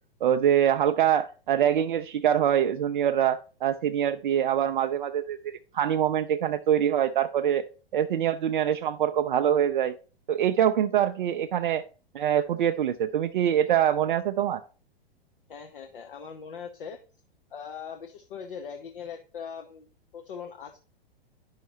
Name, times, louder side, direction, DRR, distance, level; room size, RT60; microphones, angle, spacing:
voice 1, 0.2-7.6 7.9-9.9 10.3-11.8 12.1-14.6, right 10 dB, 55° right, 7 dB, 0.5 m, -24 dB
voice 2, 15.5-17.0 17.5-19.9 20.1-20.8, left 6 dB, 60° left, 4 dB, 0.9 m, -40 dB
10.0 x 5.7 x 2.7 m, 0.37 s
figure-of-eight pair, 105°, 30 cm